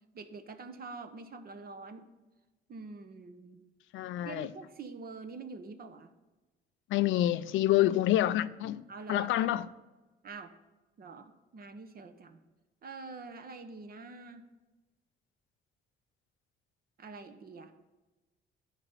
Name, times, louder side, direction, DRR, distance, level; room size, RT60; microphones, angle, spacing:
voice 1, 0.1-2.1 2.7-3.6 4.2-6.1 7.8-7.9 8.9-9.6 10.2-10.5 11.0-12.4 12.8-14.5 17.0-17.7, right 4 dB, 50° right, 1.0 m, -45 dB
voice 2, 3.9-4.5 6.9-9.7, left 14 dB, 80° left, 0.4 m, -28 dB
10.5 x 4.1 x 5.7 m
cardioid pair, 90°, 20 cm